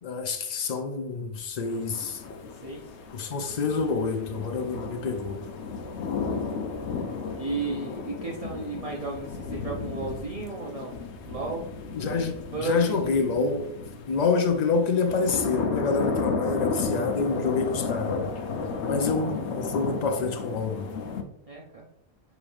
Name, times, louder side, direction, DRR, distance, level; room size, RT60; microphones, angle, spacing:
voice 1, 0.0-2.2 3.1-5.5 11.9-13.7 14.1-18.2 18.8-20.9, left 4 dB, 50° left, 0.5 m, -27 dB
sound 1, 1.7-21.2, left 4 dB, 90° left, 0.9 m, -33 dB
voice 2, 2.5-2.9 6.2-6.4 6.9-7.1 7.4-11.0 11.3-11.7 12.5-13.1 21.5-21.9, right 3 dB, 40° right, 0.6 m, -34 dB
6.5 x 3.0 x 2.5 m
omnidirectional pair, 1.1 m